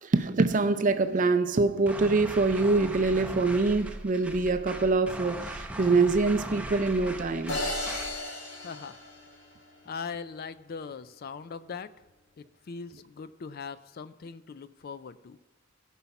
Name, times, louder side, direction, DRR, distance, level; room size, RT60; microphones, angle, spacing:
voice 1, 0.0-7.6, right 3 dB, 45° right, 0.5 m, -25 dB
sound 1, 1.9-8.2, right 1 dB, 5° right, 0.7 m, -39 dB
sound 2, 7.5-9.8, left 1 dB, 90° left, 2.9 m, -35 dB
voice 2, 8.6-9.0 9.8-11.9 12.4-15.4, left 5 dB, 50° left, 0.4 m, -40 dB
16.5 x 5.6 x 5.9 m
head